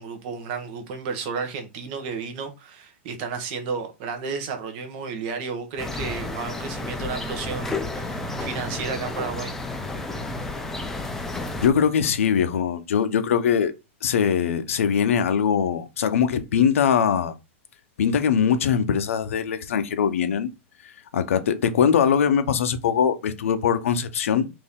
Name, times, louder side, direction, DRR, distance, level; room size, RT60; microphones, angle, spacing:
voice 1, 0.0-9.5, right 5 dB, 45° right, 1.1 m, -32 dB
sound 1, 5.8-11.7, left 2 dB, 5° left, 0.5 m, -31 dB
voice 2, 11.6-13.7 14.0-17.4 18.0-20.5 20.8-24.5, left 7 dB, 90° left, 0.7 m, -22 dB
4.3 x 2.8 x 3.6 m
supercardioid pair, 155°, 7 cm